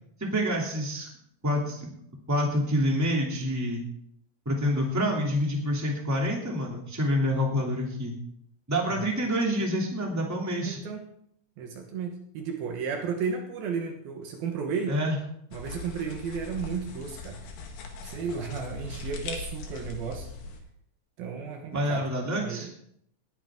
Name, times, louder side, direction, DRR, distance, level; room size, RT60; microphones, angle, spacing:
voice 1, 0.2-1.1 1.4-1.9 2.3-3.8 4.5-8.1 8.7-10.8 14.9-15.2 21.7-22.7, equal, 5° right, -1 dB, 1.9 m, -27 dB
voice 2, 10.6-11.0 11.6-15.0 15.5-17.4 18.0-20.3 21.2-22.1 22.4-22.7, right 6 dB, 80° right, 2 dB, 3.1 m, -33 dB
sound 1, 15.5-20.6, left 3 dB, 70° left, 3.3 m, -40 dB
19.5 x 10.0 x 3.7 m, 0.72 s
omnidirectional pair, 4.3 m